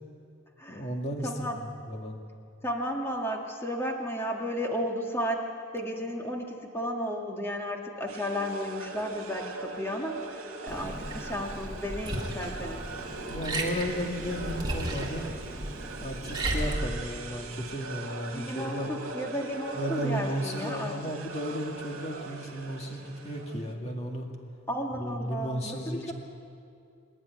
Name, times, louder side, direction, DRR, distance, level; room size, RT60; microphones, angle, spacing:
voice 1, 0.7-2.2 13.3-15.3 16.0-18.9 19.7-24.3 24.9-26.1, equal, 30° left, 2 dB, 2.1 m, -34 dB
voice 2, 1.2-1.6 2.6-5.5 5.7-10.2 10.6-12.8 18.3-21.0 24.7-26.1, equal, 10° left, 1 dB, 1.9 m, -33 dB
sound 1, 8.1-23.7, right 3 dB, 70° right, 2.3 m, -41 dB
Liquid, 10.7-16.8, right 1 dB, 20° right, 2.1 m, -35 dB
25.5 x 11.0 x 9.4 m, 2.5 s
head